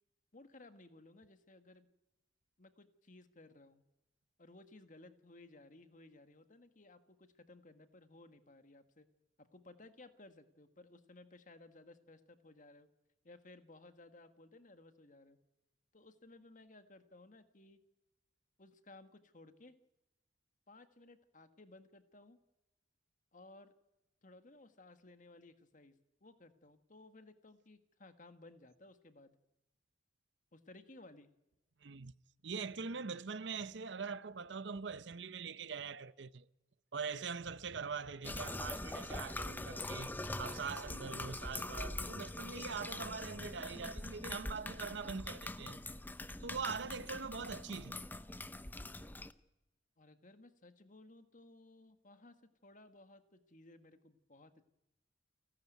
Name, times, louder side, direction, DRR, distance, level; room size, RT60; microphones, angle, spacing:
voice 1, 0.3-1.9 2.6-3.8 4.4-9.1 9.4-12.9 13.2-15.4 15.9-17.8 18.6-19.7 20.7-22.4 23.3-23.7 24.2-29.4 30.5-31.3 50.0-52.4 52.6-54.6, left 2 dB, 40° left, 1.7 m, -59 dB
voice 2, 31.8-32.1 32.4-36.5 36.9-40.1 40.4-45.8 46.4-48.0, right 5 dB, 65° right, 0.7 m, -43 dB
sound 1, 38.2-49.3, left 2 dB, 10° left, 0.7 m, -43 dB
29.5 x 12.5 x 9.3 m
head